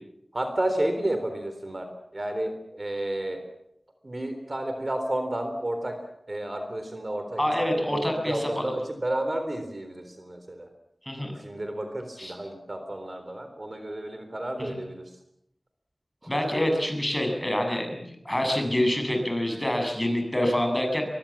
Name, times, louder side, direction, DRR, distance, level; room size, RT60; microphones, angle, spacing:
voice 1, 0.3-1.9 2.1-3.4 4.0-5.9 6.3-7.4 7.8-10.7 11.3-15.0, right 1 dB, 40° right, 7 dB, 3.8 m, -31 dB
voice 2, 7.4-8.7 11.0-11.3 12.2-12.4 14.6-14.8 16.3-21.1, left 1 dB, 10° left, 3 dB, 7.5 m, -26 dB
24.0 x 22.5 x 7.4 m, 0.77 s
wide cardioid pair, 75°, 0 cm